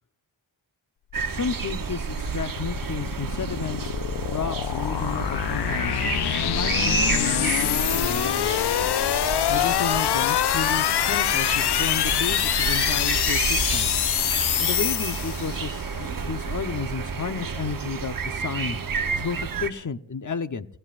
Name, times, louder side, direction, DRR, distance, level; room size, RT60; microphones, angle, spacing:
sound 1, 1.1-19.7, right 5 dB, 45° right, 1.0 m, -30 dB
voice 1, 1.3-3.9 4.3-8.5 9.5-14.0 14.6-18.8 19.1-20.7, left 5 dB, 40° left, 9 dB, 1.1 m, -32 dB
sound 2, 1.5-15.9, left 11 dB, 55° left, 0.5 m, -25 dB
29.0 x 13.5 x 2.6 m, 0.63 s
cardioid pair, 65°, 47 cm